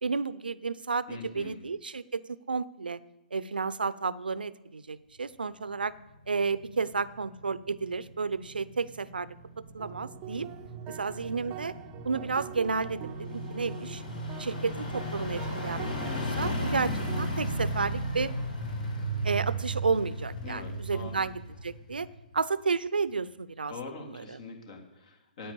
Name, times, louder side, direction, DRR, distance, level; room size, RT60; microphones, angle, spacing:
voice 1, 0.0-3.0 3.3-5.9 6.3-9.3 9.7-10.5 10.9-11.7 12.0-14.0 14.4-18.3 19.2-21.3 21.6-22.1 22.3-23.7 24.0-24.4, right 4 dB, 85° right, 18 dB, 0.6 m, -32 dB
voice 2, 1.1-1.6 20.4-21.2 23.7-25.5, left 4 dB, 55° left, 2 dB, 3.0 m, -43 dB
sound 1, 5.8-22.3 22.7-22.8, equal, 70° left, 6.3 m, -36 dB
sound 2, 9.8-17.3, right 12 dB, 30° right, 0.6 m, -43 dB
10.0 x 9.0 x 8.3 m, 0.98 s
hypercardioid pair, 135°, 5 cm